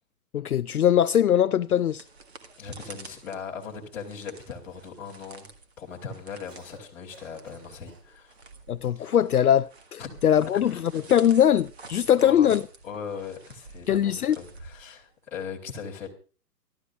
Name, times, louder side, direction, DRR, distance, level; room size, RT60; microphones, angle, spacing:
voice 1, 0.3-2.0 8.7-12.6 13.9-14.4, left 10 dB, 65° left, 0.5 m, -21 dB
sound 1, 1.6-15.3, right 3 dB, 40° right, 1.8 m, -50 dB
voice 2, 2.6-5.5 5.8-8.4 8.9-9.1 10.0-10.1 10.5-10.8 12.2-12.6 12.8-16.1, left 6 dB, 5° left, 1.3 m, -39 dB
Cough, 6.5-6.9 7.1-8.1 8.8-9.5 10.6-11.0, right 2 dB, 65° right, 6.0 m, -54 dB
25.0 x 12.5 x 2.4 m
hypercardioid pair, 175°, 50 cm